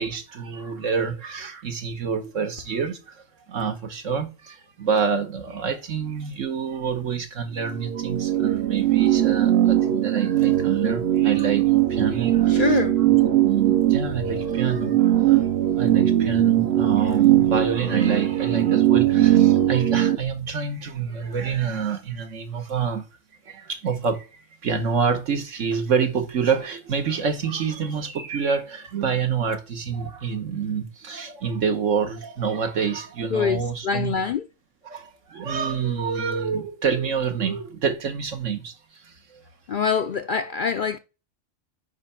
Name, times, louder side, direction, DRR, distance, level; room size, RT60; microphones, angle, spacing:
voice 1, 0.0-3.2 3.5-23.0 23.4-34.2 34.9-38.7 39.0-39.4, right 6 dB, 75° right, 1.6 m, -27 dB
sound 1, 7.6-20.2, right 13 dB, 60° right, 1.0 m, -20 dB
voice 2, 12.5-13.0 33.3-34.5 39.7-41.0, left 6 dB, 60° left, 0.5 m, -25 dB
9.5 x 3.2 x 5.8 m
omnidirectional pair, 1.3 m